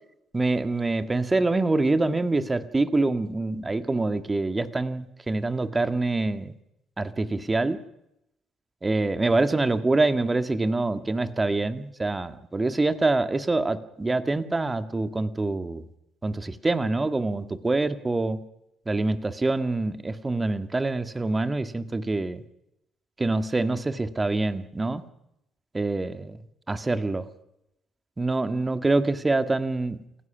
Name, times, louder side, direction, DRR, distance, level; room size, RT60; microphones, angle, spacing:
voice 1, 0.3-6.6 7.0-7.8 8.8-15.8 16.2-18.4 18.9-22.4 23.2-25.0 25.7-26.4 26.7-27.2 28.2-30.0, right 2 dB, 25° right, 10 dB, 1.8 m, -25 dB
28.0 x 16.5 x 6.0 m, 0.85 s
hypercardioid pair, 50°, 0 cm